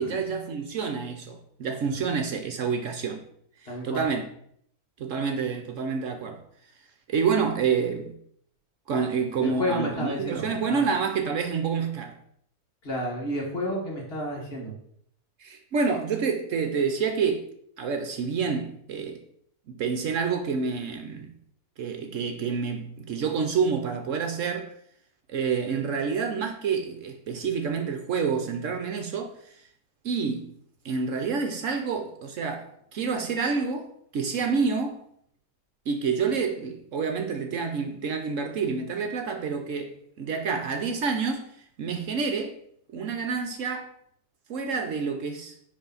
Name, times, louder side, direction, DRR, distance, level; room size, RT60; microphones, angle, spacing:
voice 1, 0.0-3.2 3.6-4.2 5.0-6.4 7.1-8.2 8.9-12.1 15.4-17.5 17.8-19.2 19.7-21.3 21.8-24.7 25.3-29.6 30.0-30.5 30.8-35.0 35.9-42.6 42.9-43.9 44.5-45.5, right 5 dB, 65° right, 1.0 m, -28 dB
voice 2, 3.7-4.0 9.4-10.8 12.8-14.7, left 1 dB, 40° left, 1.8 m, -31 dB
10.0 x 3.5 x 3.9 m
omnidirectional pair, 1.6 m